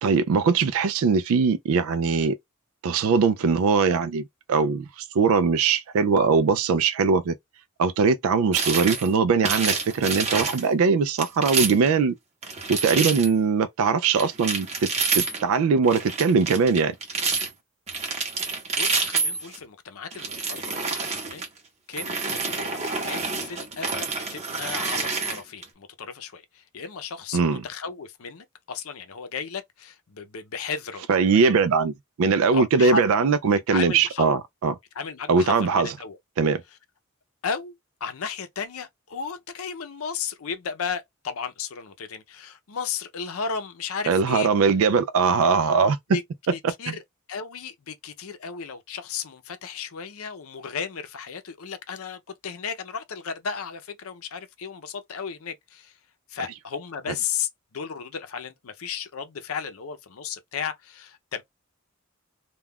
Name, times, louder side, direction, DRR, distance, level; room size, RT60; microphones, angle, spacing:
voice 1, 0.0-2.3 2.8-7.3 7.8-12.1 12.7-14.7 15.1-16.9 27.3-27.6 31.1-34.8 35.3-35.9 36.4-36.6 44.1-46.0, right 5 dB, 75° right, 0.3 m, -21 dB
sound 1, 8.5-9.1 9.4-10.7 11.2-11.9 12.4-13.3 14.1-15.5 15.8-17.5 17.9-19.6 20.1-21.5 21.9-25.6, right 4 dB, 30° right, 0.8 m, -28 dB
voice 2, 18.8-21.5 21.9-31.0 31.3-31.5 32.5-33.0 33.7-34.3 35.0-36.2 37.4-37.7 38.0-44.5 46.1-46.2 46.5-47.0 47.3-55.9 56.3-61.4, left 6 dB, 80° left, 0.6 m, -34 dB
2.3 x 2.3 x 3.4 m
head